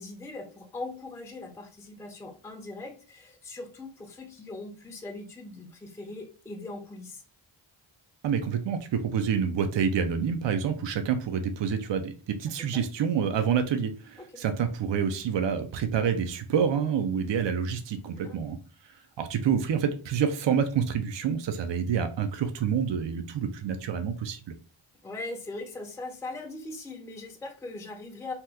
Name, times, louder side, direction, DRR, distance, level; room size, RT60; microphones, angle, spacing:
voice 1, 0.0-7.2 12.5-12.8 14.2-14.4 18.1-18.4 25.0-28.3, left 2 dB, 5° left, 2 dB, 0.5 m, -40 dB
voice 2, 8.2-18.6 19.2-24.4, right 7 dB, 65° right, 8 dB, 0.5 m, -27 dB
2.8 x 2.3 x 3.4 m, 0.37 s
wide cardioid pair, 105°, 48 cm